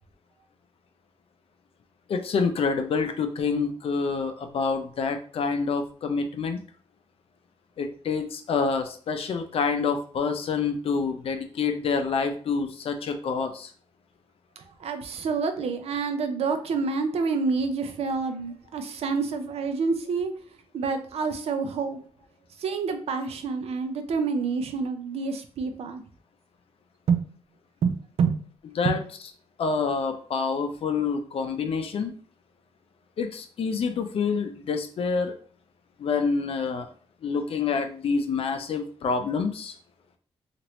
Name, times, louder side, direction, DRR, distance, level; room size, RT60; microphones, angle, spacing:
voice 1, 2.1-6.6 7.8-13.7 28.8-29.0 29.6-32.1 33.2-35.3 36.0-36.9 37.2-39.7, left 5 dB, 60° left, 6 dB, 0.5 m, -27 dB
voice 2, 14.6-20.3 20.7-22.0 22.6-26.0 27.1-27.2 27.8-28.4 28.8-29.0, right 5 dB, 70° right, 7 dB, 0.5 m, -28 dB
2.9 x 2.5 x 3.0 m, 0.44 s
wide cardioid pair, 145°, 11 cm